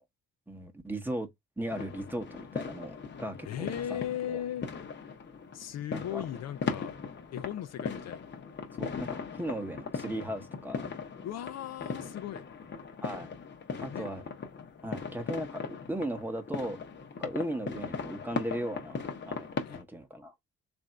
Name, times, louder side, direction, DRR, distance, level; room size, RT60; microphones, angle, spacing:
voice 1, 0.5-1.3 1.6-4.0 4.3-4.4 5.9-6.2 8.8-10.8 13.0-13.3 13.8-14.2 14.8-16.8 17.2-20.3, right 1 dB, 5° right, 0.9 m, -37 dB
sound 1, 1.7-19.8, left 5 dB, 35° left, 0.9 m, -39 dB
voice 2, 3.5-4.7 5.5-7.0 7.3-8.2 11.2-12.5 13.7-14.1 19.7-19.8, left 11 dB, 60° left, 0.5 m, -37 dB
3.4 x 2.6 x 4.2 m
cardioid pair, 90°, 30 cm